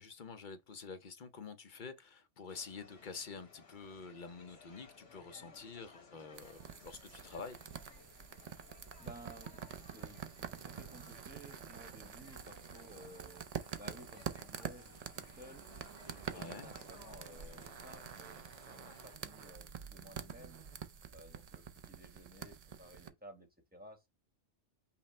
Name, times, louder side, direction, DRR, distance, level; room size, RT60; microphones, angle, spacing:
voice 1, 0.0-7.6 16.3-16.7, left 5 dB, 50° left, 0.7 m, -48 dB
sound 1, 2.5-19.2, left 4 dB, 85° left, 1.6 m, -60 dB
sound 2, 6.3-23.1, right 8 dB, 55° right, 0.4 m, -47 dB
voice 2, 8.7-13.5 13.8-20.6 21.1-24.1, right 1 dB, 10° right, 1.0 m, -56 dB
5.8 x 2.1 x 4.2 m
omnidirectional pair, 1.2 m